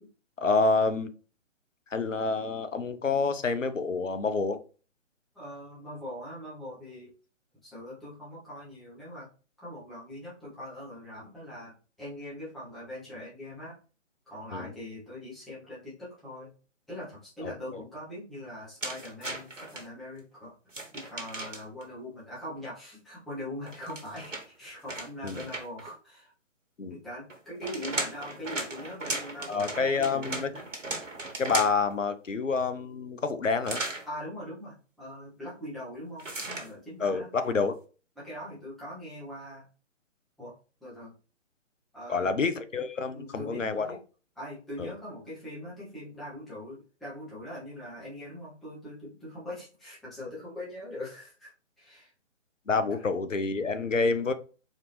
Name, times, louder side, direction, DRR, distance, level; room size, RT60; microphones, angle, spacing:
voice 1, 0.4-1.1 1.9-4.6 14.5-14.7 17.4-17.5 25.2-25.4 26.8-27.0 29.5-30.5 31.4-33.8 37.0-37.8 42.1-44.0 44.8-44.9 52.7-54.3, left 4 dB, 90° left, 10 dB, 0.7 m, -28 dB
voice 2, 5.3-7.1 7.6-9.3 9.6-13.8 14.3-16.5 16.9-20.6 20.9-26.3 26.9-30.7 34.1-37.3 38.2-39.7 40.4-40.5 40.8-41.1 41.9-42.3 43.1-44.0 44.3-51.5 51.8-52.1 52.9-53.0, left 1 dB, ahead, -10 dB, 0.6 m, -42 dB
sound 1, 18.8-19.8 20.7-21.8 23.6-25.9 27.3-31.9 33.6-34.1 36.2-36.7, right 2 dB, 85° right, 1.3 m, -36 dB
4.1 x 2.6 x 3.1 m, 0.36 s
figure-of-eight pair, 135°, 37 cm